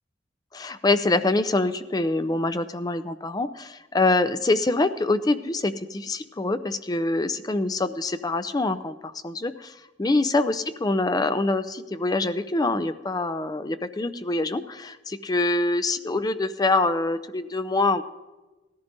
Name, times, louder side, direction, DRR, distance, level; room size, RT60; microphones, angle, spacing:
voice 1, 0.5-9.7 10.0-18.0, left 2 dB, 20° left, 11 dB, 0.5 m, -25 dB
19.0 x 14.0 x 2.6 m, 1.1 s
head